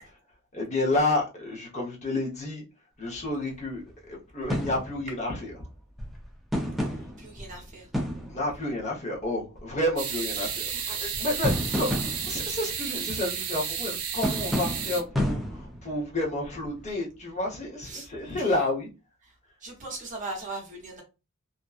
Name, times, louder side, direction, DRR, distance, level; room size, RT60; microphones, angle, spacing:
voice 1, 0.5-2.6 3.0-5.5 8.3-11.9 12.2-18.9, left 1 dB, 30° left, -3 dB, 0.8 m, -30 dB
sound 1, 3.5-3.6 3.9-4.0 4.4-5.4 5.7-8.8 9.6-10.0 10.6-10.7 11.0-13.2 14.2-16.9 17.5-17.6, equal, ahead, 0.4 m, -31 dB
voice 2, 7.2-7.9 17.8-18.1 18.4-18.6 19.2-19.3 19.6-21.0, right 2 dB, 35° right, 0 dB, 0.8 m, -39 dB
sound 2, 10.0-15.0, right 7 dB, 70° right, 0.5 m, -32 dB
2.5 x 2.2 x 2.3 m, 0.29 s
head